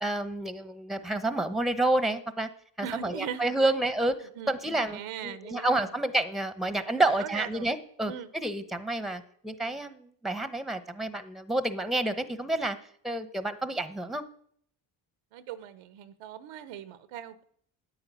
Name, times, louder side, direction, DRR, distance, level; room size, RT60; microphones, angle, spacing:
voice 1, 0.0-2.5 2.8-12.8 13.0-14.2, right 2 dB, ahead, 11 dB, 1.0 m, -29 dB
voice 2, 2.8-3.7 4.4-4.5 4.9-5.9 6.9-7.7 8.1-8.3 15.3-17.4, right 9 dB, 85° right, 14 dB, 1.1 m, -40 dB
9.8 x 8.7 x 8.4 m, 0.64 s
cardioid pair, 85°, 50 cm